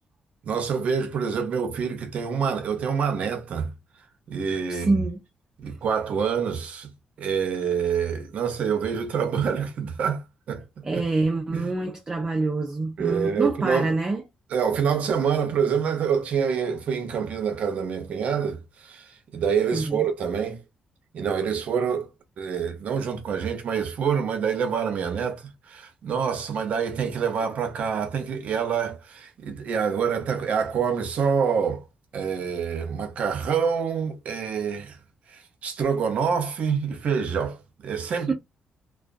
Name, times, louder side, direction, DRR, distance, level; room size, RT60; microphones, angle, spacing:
voice 1, 0.5-3.7 4.3-5.0 5.6-6.9 7.2-10.7 10.9-11.0 11.5-11.7 13.0-13.9 14.5-20.6 21.1-22.1 22.4-31.8 32.1-35.0 35.6-38.3, right 6 dB, 65° right, 0.6 m, -26 dB
voice 2, 4.7-5.2 10.8-14.2 19.7-20.1 38.0-38.3, right 3 dB, 25° right, 0.5 m, -26 dB
2.3 x 2.2 x 2.4 m
cardioid pair, 110°, 3 cm